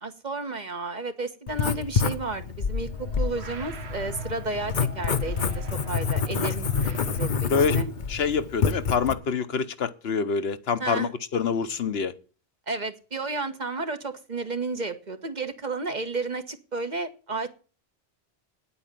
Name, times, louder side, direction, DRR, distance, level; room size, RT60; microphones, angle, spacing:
voice 1, 0.0-7.9 10.8-11.1 12.7-17.5, right 3 dB, 45° right, 1.5 m, -32 dB
Writing, 1.5-9.1, left 6 dB, 50° left, 1.0 m, -28 dB
sound 1, 2.6-8.2, right 5 dB, 85° right, 1.5 m, -41 dB
voice 2, 8.1-12.1, left 5 dB, 75° left, 1.2 m, -26 dB
9.8 x 8.7 x 9.2 m
omnidirectional pair, 1.1 m